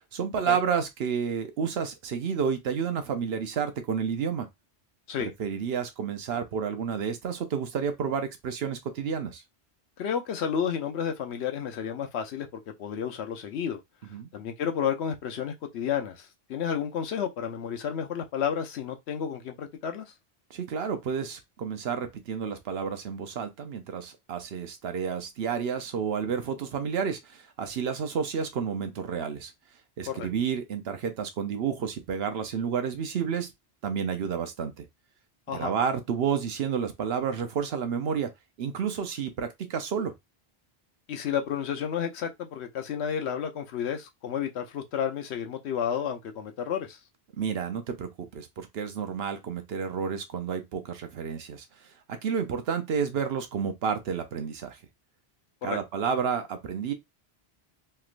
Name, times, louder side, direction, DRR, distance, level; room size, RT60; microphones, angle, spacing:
voice 1, 0.0-4.5 5.2-9.4 14.1-14.3 20.5-29.5 30.0-33.5 33.8-34.9 35.5-38.3 38.6-40.1 47.4-51.6 52.1-54.8 55.6-56.9, right 7 dB, 70° right, 0.9 m, -30 dB
voice 2, 10.0-13.8 14.3-20.0 30.1-30.3 35.5-35.7 41.1-47.0 55.6-55.8, left 8 dB, 85° left, 1.0 m, -31 dB
3.2 x 2.9 x 2.5 m
omnidirectional pair, 1.1 m